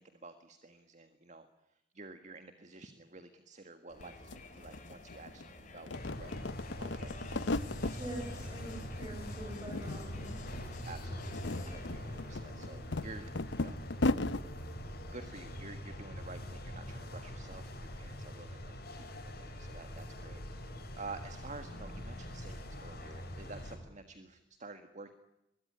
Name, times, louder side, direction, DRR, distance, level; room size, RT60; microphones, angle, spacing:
voice 1, 0.0-6.5 6.8-8.0 8.4-8.6 10.8-13.3 13.6-13.8 15.1-25.1, right 3 dB, 40° right, 9 dB, 1.8 m, -50 dB
Crowd, 3.9-12.7, left 2 dB, 45° left, 6.9 m, -50 dB
sound 1, 4.0-4.1 4.3-5.4 5.8-8.0 8.4-9.1 9.4-10.3 10.5-10.7 11.2-14.4, left 2 dB, 80° left, 0.9 m, -35 dB
sound 2, 5.9-23.8, equal, 60° left, 7.1 m, -44 dB
voice 2, 8.0-10.4, equal, 20° right, -1 dB, 6.8 m, -44 dB
24.0 x 22.5 x 10.0 m, 0.90 s
head